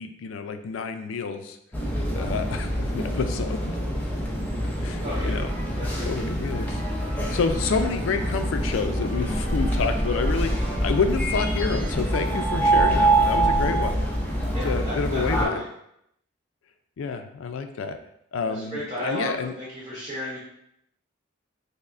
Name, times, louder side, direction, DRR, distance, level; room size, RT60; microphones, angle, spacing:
voice 1, 0.0-1.6 2.1-3.8 4.8-5.5 6.0-14.0 14.6-15.6 17.0-18.0 18.3-19.5, left 5 dB, 75° left, 8 dB, 0.3 m, -29 dB
sound 1, 1.7-15.5, right 1 dB, 10° left, 0.4 m, -25 dB
voice 2, 5.0-5.4 5.8-6.1 14.5-15.6 18.4-20.4, equal, 25° right, -9 dB, 0.9 m, -33 dB
5.3 x 2.1 x 2.5 m, 0.76 s
head